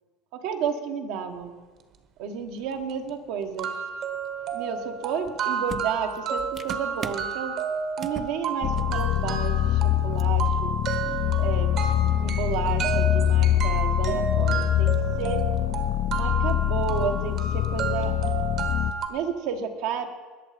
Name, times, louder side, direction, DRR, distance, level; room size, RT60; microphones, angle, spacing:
voice 1, 0.3-1.5 2.2-3.7 4.5-7.6 8.0-10.7 11.4-11.8 12.2-15.4 16.1-18.2 19.1-20.1, right 7 dB, 70° right, 4 dB, 1.4 m, -31 dB
sound 1, 2.6-2.7 3.1-3.2 3.6-19.1, right 6 dB, 50° right, 1.3 m, -31 dB
sound 2, 5.3-5.4 5.7-7.3 8.0-8.4 8.7-9.0 9.3-9.5 10.2-10.3, right 7 dB, 35° right, 0.5 m, -38 dB
sound 3, 8.6-18.9, left 13 dB, 55° left, 0.5 m, -24 dB
20.0 x 6.8 x 5.1 m, 1.4 s
supercardioid pair, 130°, 0 cm